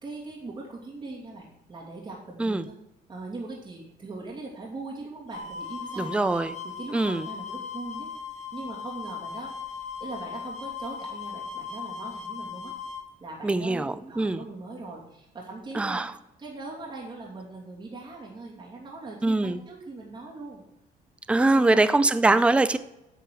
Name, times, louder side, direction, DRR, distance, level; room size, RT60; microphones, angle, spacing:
voice 1, 0.0-2.7 3.1-6.3 6.6-12.8 13.2-16.1 16.4-20.6 21.4-21.9, right 3 dB, 30° right, -4 dB, 2.7 m, -40 dB
sound 1, 5.3-13.0, left 6 dB, 45° left, 1.3 m, -38 dB
voice 2, 6.0-6.5 6.9-7.3 13.4-14.4 15.7-16.1 19.2-19.6 21.3-22.8, right 2 dB, 5° right, 13 dB, 0.4 m, -23 dB
9.4 x 4.9 x 6.3 m, 0.93 s
cardioid pair, 110°, 17 cm